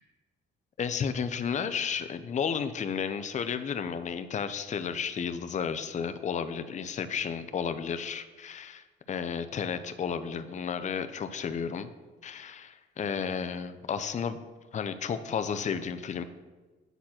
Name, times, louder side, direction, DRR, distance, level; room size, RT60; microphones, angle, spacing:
voice 1, 0.8-11.9 12.2-14.4 14.7-16.2, left 6 dB, 35° left, 10 dB, 0.5 m, -32 dB
8.0 x 4.2 x 5.8 m, 1.3 s
cardioid pair, 90°, 20 cm